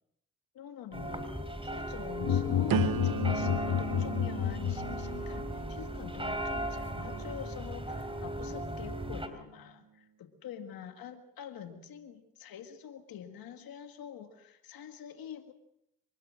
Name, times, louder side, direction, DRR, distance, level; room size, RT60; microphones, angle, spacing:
voice 1, 0.5-15.5, left 8 dB, 85° left, 7 dB, 1.9 m, -46 dB
sound 1, 0.9-9.3, right 1 dB, 15° right, 3.9 m, -37 dB
sound 2, 2.2-5.4, left 9 dB, 60° left, 1.1 m, -30 dB
sound 3, 2.7-8.5 9.1-9.5, right 9 dB, 75° right, 1.2 m, -38 dB
24.5 x 21.0 x 6.4 m, 0.79 s
supercardioid pair, 45°, 35 cm